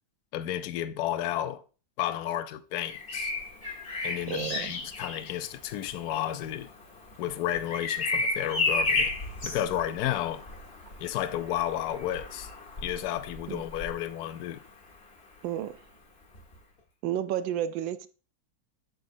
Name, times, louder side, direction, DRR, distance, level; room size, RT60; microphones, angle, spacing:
voice 1, 0.3-1.6 2.0-3.3 4.0-6.7 7.2-9.1 9.4-10.4 11.0-12.5 12.8-14.6, left 12 dB, 70° left, 1.0 m, -32 dB
Bird vocalization bird call bird song, 2.8-14.6 16.3-16.5, left 3 dB, 35° left, 1.6 m, -33 dB
voice 2, 4.3-4.7 13.5-13.6 15.4-15.8 17.0-18.1, right 11 dB, 85° right, 1.3 m, -31 dB
7.9 x 6.2 x 2.6 m
omnidirectional pair, 2.0 m